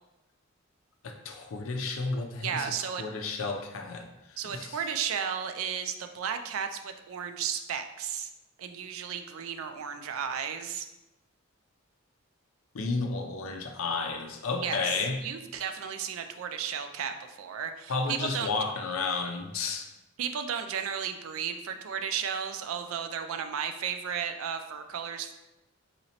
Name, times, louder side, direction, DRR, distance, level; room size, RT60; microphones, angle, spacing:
voice 1, 1.0-2.7 3.0-4.1 4.5-4.8 12.7-15.2 17.9-19.9, left 4 dB, 75° left, 4 dB, 0.5 m, -32 dB
voice 2, 2.4-3.0 4.4-8.3 8.6-10.9 14.6-18.5 20.2-25.3, right 7 dB, 80° right, 7 dB, 0.3 m, -34 dB
4.1 x 2.8 x 2.8 m, 0.97 s
head